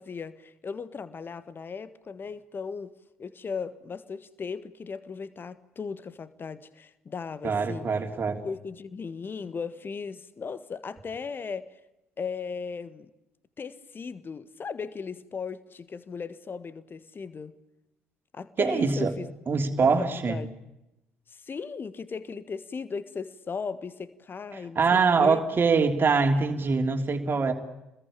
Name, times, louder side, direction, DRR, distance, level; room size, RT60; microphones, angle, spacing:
voice 1, 0.0-7.9 8.4-11.7 12.2-13.1 13.6-17.6 18.3-19.3 19.8-20.5 21.3-25.4, left 5 dB, 35° left, 1.6 m, -37 dB
voice 2, 7.4-8.4 18.6-19.1 19.5-20.4 24.5-27.5, right 4 dB, 35° right, 3.3 m, -24 dB
27.0 x 21.0 x 8.6 m
figure-of-eight pair, 45°, 6 cm